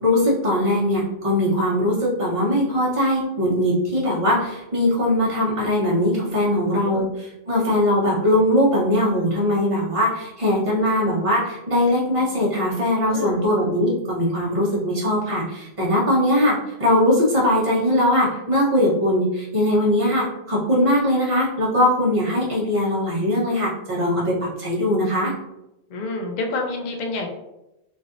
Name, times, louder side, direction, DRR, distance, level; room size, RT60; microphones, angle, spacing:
voice 1, 0.0-25.3, left 1 dB, 35° right, -5 dB, 0.9 m, -20 dB
voice 2, 13.1-13.4 25.9-27.3, left 3 dB, 55° left, 2 dB, 0.5 m, -28 dB
3.2 x 2.6 x 2.5 m, 0.93 s
omnidirectional pair, 1.1 m